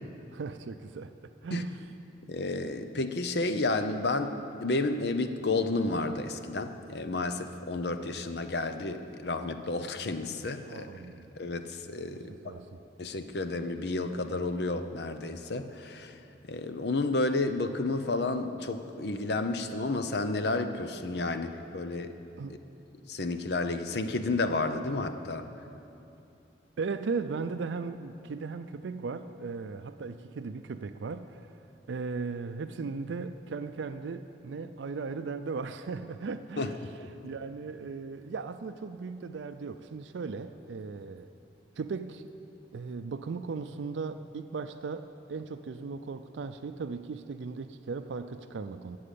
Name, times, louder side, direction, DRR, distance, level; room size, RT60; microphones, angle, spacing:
voice 1, 0.3-1.1 1.4-1.8 10.7-11.3 12.3-12.8 22.4-22.5 26.8-31.5 31.9-36.8 37.2-41.3 41.8-42.3 42.7-49.0, right 4 dB, 80° right, 10 dB, 0.4 m, -37 dB
voice 2, 2.3-10.9 11.4-12.3 13.0-16.1 16.5-22.1 23.0-25.4 36.6-36.7 37.0-37.1, left 2 dB, 65° left, 9 dB, 0.7 m, -31 dB
13.0 x 7.8 x 8.4 m, 2.8 s
head